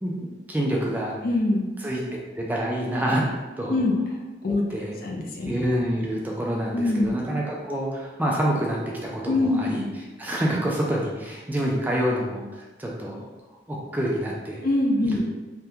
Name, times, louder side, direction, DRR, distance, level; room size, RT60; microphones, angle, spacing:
voice 1, 0.0-1.2 1.8-2.0 2.4-3.2 3.6-3.8 4.7-5.0 5.4-9.9 10.2-13.3 13.7-14.6 15.1-15.3, right 1 dB, 10° right, -3 dB, 0.4 m, -27 dB
voice 2, 1.2-1.7 3.7-3.9 4.4-4.6 5.0-5.5 6.7-7.1 9.3-9.6 14.6-15.2, left 2 dB, 55° left, 0 dB, 0.5 m, -23 dB
3.4 x 2.2 x 2.8 m, 1.2 s
head